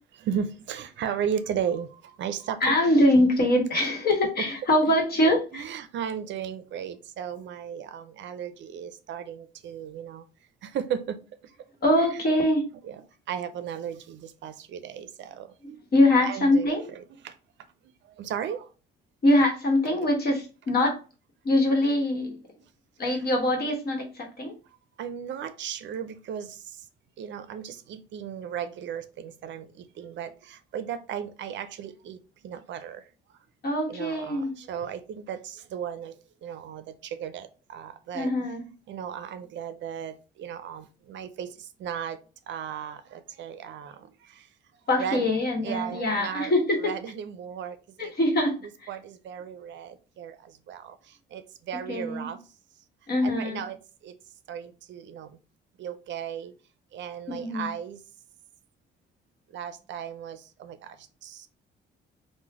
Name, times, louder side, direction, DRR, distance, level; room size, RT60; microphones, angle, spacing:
voice 1, 0.2-2.8 5.5-10.2 10.6-11.5 12.0-12.2 12.8-15.8 16.2-17.4 18.0-18.7 25.0-26.9 27.2-33.1 33.9-38.3 38.9-42.2 42.5-44.5 45.0-45.3 45.6-46.5 46.8-48.1 48.9-52.4 53.2-53.8 54.0-54.2 54.5-55.4 55.8-56.5 56.9-58.0 59.5-61.5, right 8 dB, 65° right, 11 dB, 0.4 m, -36 dB
voice 2, 2.6-5.6 11.8-12.6 15.9-16.9 19.2-21.0 21.4-22.4 23.0-24.5 33.6-34.5 38.1-38.6 44.9-46.9 48.0-48.9 51.9-52.3 53.1-53.6 57.3-57.7, left 1 dB, 50° left, 2 dB, 1.1 m, -23 dB
3.1 x 2.1 x 3.5 m, 0.34 s
cardioid pair, 90°, 20 cm